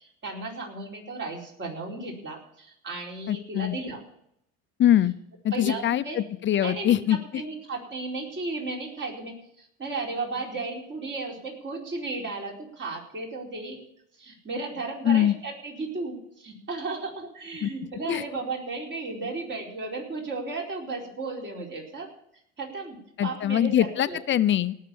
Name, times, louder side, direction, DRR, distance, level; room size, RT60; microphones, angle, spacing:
voice 1, 0.0-4.0 5.5-6.2 6.6-13.8 14.2-22.1 22.6-24.4, right 3 dB, 35° right, 0 dB, 4.5 m, -35 dB
voice 2, 3.3-3.7 4.8-5.1 5.4-7.2 15.0-15.3 17.6-17.7 18.1-18.2 23.2-24.7, left 11 dB, 35° left, 14 dB, 0.7 m, -23 dB
18.0 x 6.7 x 7.0 m, 0.73 s
cardioid pair, 115°, 33 cm